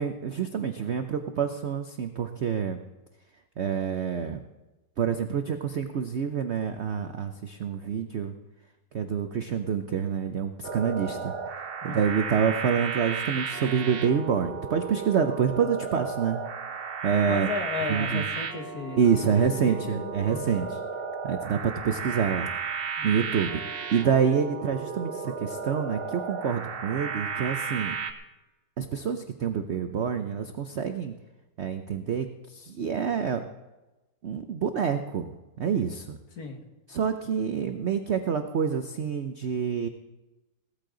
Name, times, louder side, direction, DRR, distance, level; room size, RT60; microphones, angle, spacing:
voice 1, 0.0-2.8 3.6-4.4 5.0-8.3 8.9-11.3 11.8-16.4 17.0-17.5 17.9-18.3 19.0-20.8 21.2-22.5 23.0-23.6 23.9-27.9 28.8-31.1 31.6-33.4 34.2-35.3 35.6-36.2 36.9-39.9, right 7 dB, 75° right, 7 dB, 0.6 m, -27 dB
sound 1, 10.6-28.1, right 5 dB, 45° right, 0.8 m, -34 dB
voice 2, 17.2-19.3 19.6-20.7 23.0-23.3 36.4-36.6, left 4 dB, 50° left, 4 dB, 2.0 m, -35 dB
17.5 x 13.5 x 3.9 m, 1.1 s
omnidirectional pair, 2.1 m